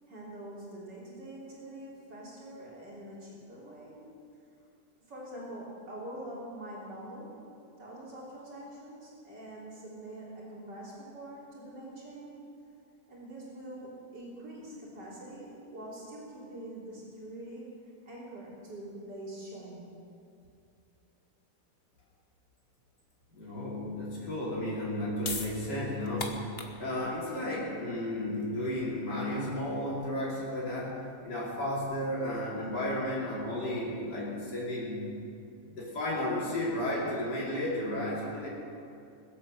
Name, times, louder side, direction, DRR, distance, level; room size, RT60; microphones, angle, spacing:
voice 1, 0.1-4.0 5.1-7.3 7.8-12.4 13.1-17.7 18.0-20.0, right 1 dB, 85° right, -6 dB, 4.1 m, -44 dB
voice 2, 23.3-35.1 35.7-38.5, left 1 dB, 80° left, -6 dB, 3.8 m, -33 dB
sound 1, 25.2-31.5, left 4 dB, 40° left, 1.4 m, -43 dB
21.0 x 8.2 x 7.7 m, 2.6 s
omnidirectional pair, 1.8 m